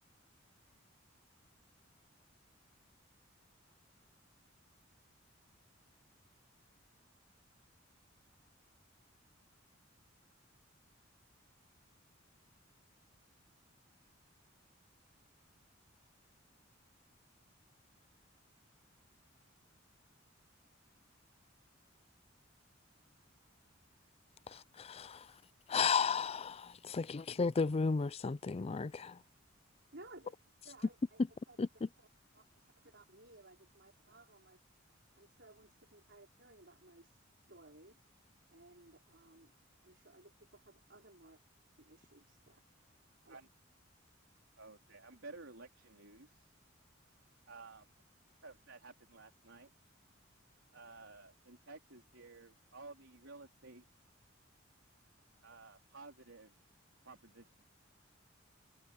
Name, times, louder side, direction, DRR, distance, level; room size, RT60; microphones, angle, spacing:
voice 1, 24.5-25.3 25.7-29.2 31.6-31.7, left 5 dB, 30° left, 0.4 m, -34 dB
voice 2, 29.9-30.4 30.6-31.6 32.3-34.6 35.1-37.2 37.5-38.0 38.5-39.5 39.8-41.4 41.8-42.9 43.2-43.4, right 2 dB, 60° right, 5.0 m, -59 dB
voice 3, 44.6-46.5 47.5-47.9 48.4-49.7 50.7-53.9 55.4-56.5 57.0-57.6, right 3 dB, 90° right, 4.0 m, -54 dB
head